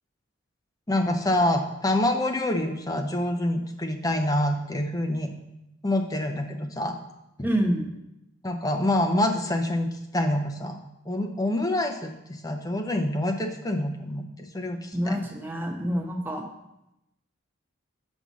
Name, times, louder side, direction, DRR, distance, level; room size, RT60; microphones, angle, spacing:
voice 1, 0.9-5.3 5.8-7.0 7.4-7.5 8.4-9.9 10.1-10.8 11.1-15.2, left 1 dB, 20° left, 4 dB, 0.6 m, -26 dB
voice 2, 7.4-7.9 14.9-16.5, equal, 10° right, 1 dB, 0.9 m, -27 dB
5.8 x 5.4 x 6.2 m, 0.88 s
head